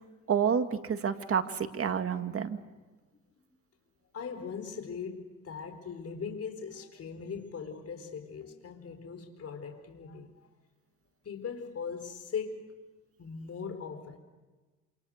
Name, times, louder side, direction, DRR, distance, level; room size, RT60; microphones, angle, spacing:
voice 1, 0.3-2.6, right 7 dB, 50° right, 8 dB, 2.1 m, -29 dB
voice 2, 4.1-10.3 11.2-12.7 13.2-14.2, left 6 dB, 50° left, 7 dB, 4.5 m, -40 dB
28.0 x 27.0 x 6.6 m, 1.3 s
cardioid pair, 90°, 30 cm